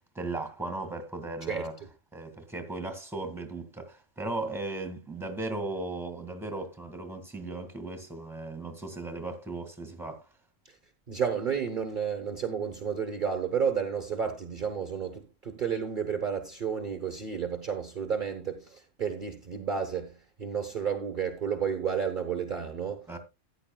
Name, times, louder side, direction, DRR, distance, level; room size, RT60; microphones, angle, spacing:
voice 1, 0.0-1.7 2.1-10.2 23.1-23.2, right 2 dB, ahead, 1.8 m, -37 dB
voice 2, 11.1-23.1, right 7 dB, 40° right, 1.2 m, -31 dB
14.0 x 10.0 x 2.3 m
omnidirectional pair, 1.3 m